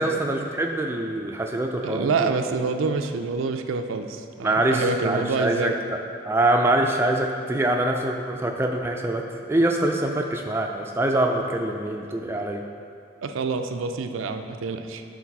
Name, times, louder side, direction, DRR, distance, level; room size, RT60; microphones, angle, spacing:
voice 1, 0.0-2.3 4.4-6.0 6.2-12.6, right 1 dB, 10° right, 2 dB, 0.3 m, -24 dB
voice 2, 1.8-5.8 13.2-15.0, right 4 dB, 75° right, 6 dB, 0.4 m, -27 dB
7.2 x 3.9 x 5.9 m, 2.4 s
head